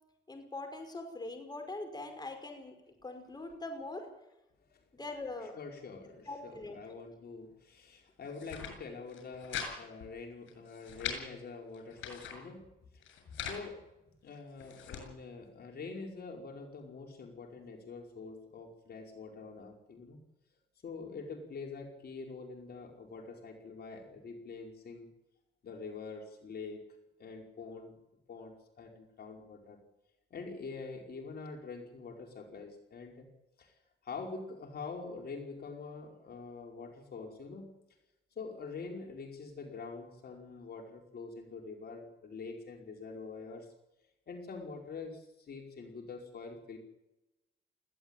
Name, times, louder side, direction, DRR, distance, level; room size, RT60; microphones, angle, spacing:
voice 1, 0.3-2.7 3.0-4.1 4.9-5.6 6.3-6.8, left 2 dB, 20° left, 5 dB, 5.4 m, -42 dB
voice 2, 5.5-12.6 12.9-13.8 14.2-20.2 20.8-25.1 25.6-26.8 27.2-27.9 28.3-29.8 30.3-33.3 33.6-33.7 34.0-37.7 38.3-43.7 44.3-46.8, left 4 dB, 55° left, 2 dB, 5.0 m, -45 dB
sound 1, 8.2-8.7 9.1-9.7 10.0-10.1 10.5-11.2 11.7-12.4 13.0-13.6 14.3-15.0, left 8 dB, 80° left, 7.4 m, -41 dB
20.5 x 16.0 x 9.1 m, 0.93 s
cardioid pair, 90°, 20 cm